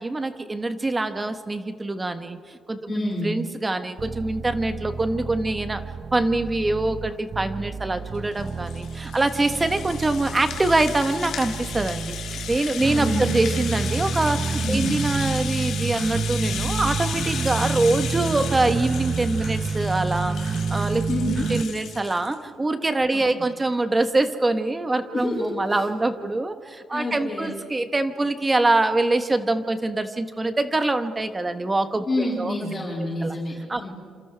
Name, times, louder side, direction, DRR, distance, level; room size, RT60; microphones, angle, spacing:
voice 1, 0.0-5.8 6.1-20.4 20.7-21.0 21.5-32.8 33.2-33.4 33.7-33.9, right 2 dB, 20° right, 9 dB, 1.2 m, -24 dB
voice 2, 2.9-3.4 12.8-13.3 14.6-15.0 21.1-21.5 23.1-23.2 25.1-25.8 26.9-27.5 32.1-33.9, left 1 dB, 30° left, -9 dB, 7.6 m, -28 dB
sound 1, 4.0-21.6, right 4 dB, 40° right, 0.9 m, -29 dB
Rattle (instrument), 8.1-22.4, left 8 dB, 75° left, 1.9 m, -35 dB
27.5 x 27.5 x 3.4 m, 2.1 s
cardioid pair, 90°, 0 cm